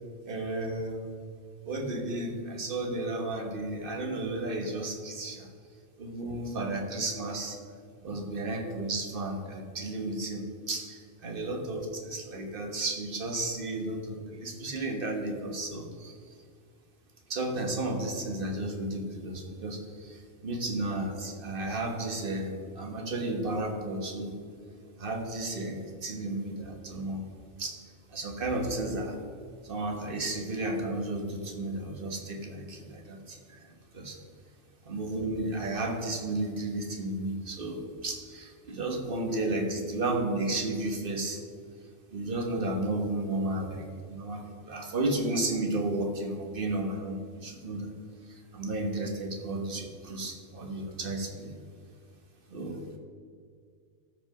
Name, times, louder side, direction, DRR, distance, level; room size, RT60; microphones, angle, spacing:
voice 1, 0.2-1.1 1.6-5.5 6.0-7.6 8.0-16.4 17.3-24.3 25.0-27.2 27.6-27.8 28.1-29.2 29.6-34.2 34.8-41.4 42.1-47.9 48.2-51.5 52.5-53.0, right 2 dB, 45° right, 3 dB, 1.5 m, -33 dB
13.0 x 5.3 x 4.9 m, 2.1 s
omnidirectional pair, 1.4 m